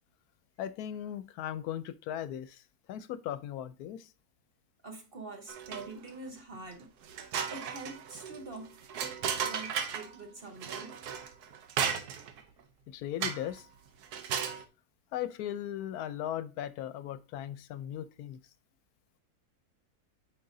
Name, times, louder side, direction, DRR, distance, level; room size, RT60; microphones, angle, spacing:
voice 1, 0.6-2.6 2.9-4.1 12.9-13.7 15.1-18.4, left 11 dB, 80° left, 1.1 m, -37 dB
voice 2, 4.8-8.8 9.4-11.0, right 3 dB, 40° right, 1.2 m, -45 dB
sound 1, 5.5-6.1 6.5-6.6 7.0-10.1 10.6-12.4 13.2-13.6 14.0-14.6, right 7 dB, 85° right, 1.3 m, -35 dB
8.5 x 5.2 x 2.6 m
omnidirectional pair, 1.6 m